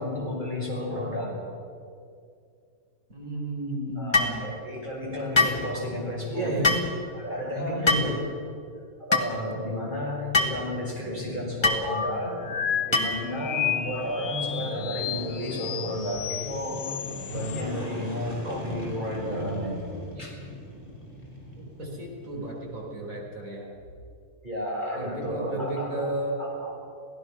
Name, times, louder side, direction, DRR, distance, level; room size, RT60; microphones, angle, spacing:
voice 1, 0.0-1.4 4.0-6.9 7.1-8.2 9.0-12.4 12.9-16.8 17.3-19.8 20.2-20.3 24.4-26.1 26.4-26.7, left 1 dB, 30° right, -4 dB, 6.4 m, -32 dB
voice 2, 3.1-4.6 6.3-6.9 7.5-8.2 21.6-23.7 24.9-26.4, right 1 dB, 60° right, -2 dB, 5.0 m, -33 dB
sound 1, 4.1-4.4 5.3-5.6 6.6-6.9 7.9-8.1 9.1-9.3 10.3-10.6 11.6-11.8 12.9-13.2, left 2 dB, 20° left, 1.7 m, -22 dB
sound 2, 11.5-22.8, left 1 dB, 35° left, 4.8 m, -40 dB
sound 3, 11.8-17.6, left 9 dB, 90° left, 1.4 m, -32 dB
28.0 x 17.0 x 6.2 m, 2.3 s
omnidirectional pair, 1.6 m